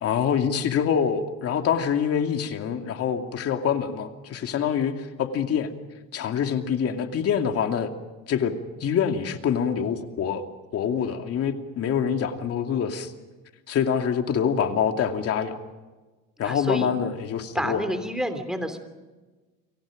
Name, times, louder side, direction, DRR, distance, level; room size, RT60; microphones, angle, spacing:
voice 1, 0.0-5.7 6.1-7.9 8.3-8.5 8.8-10.4 10.7-13.1 13.7-15.6 16.4-17.8, left 7 dB, 45° left, 5 dB, 2.6 m, -25 dB
voice 2, 16.4-16.9 17.5-18.8, equal, ahead, 8 dB, 3.2 m, -29 dB
30.0 x 24.0 x 5.2 m, 1.2 s
cardioid pair, 130°, 32 cm